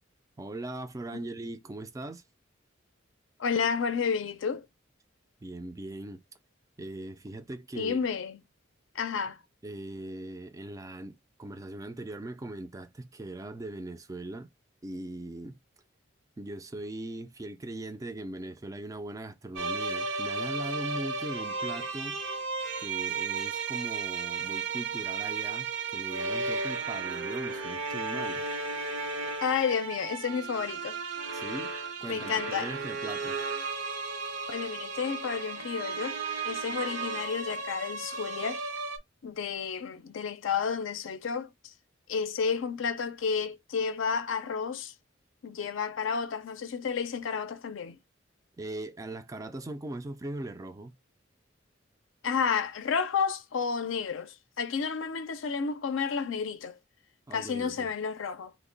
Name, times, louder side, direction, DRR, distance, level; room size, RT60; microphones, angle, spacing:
voice 1, 0.4-2.2 5.4-6.2 6.8-8.0 9.6-14.5 14.8-15.6 16.4-22.2 22.8-28.4 31.3-31.7 32.0-33.4 48.6-50.9 57.3-57.9, right 1 dB, 15° right, 0.3 m, -40 dB
voice 2, 3.4-4.7 7.8-8.4 8.9-9.4 29.4-31.0 32.1-32.7 34.5-36.2 36.4-38.6 39.2-41.7 42.1-44.9 45.4-48.0 52.2-56.8 57.3-58.5, left 6 dB, 75° left, 0.4 m, -31 dB
sound 1, 19.6-39.0, right 4 dB, 70° right, 0.5 m, -34 dB
3.0 x 2.1 x 3.8 m
head